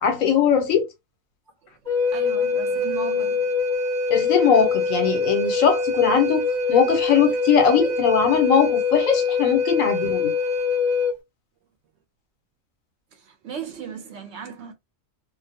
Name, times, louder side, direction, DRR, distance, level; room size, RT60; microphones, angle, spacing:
voice 1, 0.0-0.9 4.1-10.3, left 7 dB, 80° left, 1.1 m, -20 dB
Wind instrument woodwind instrument, 1.9-11.1, left 4 dB, 35° right, 1.0 m, -24 dB
voice 2, 2.1-3.4 13.1-14.7, right 6 dB, 65° right, 0.8 m, -36 dB
2.4 x 2.2 x 2.6 m
omnidirectional pair, 1.4 m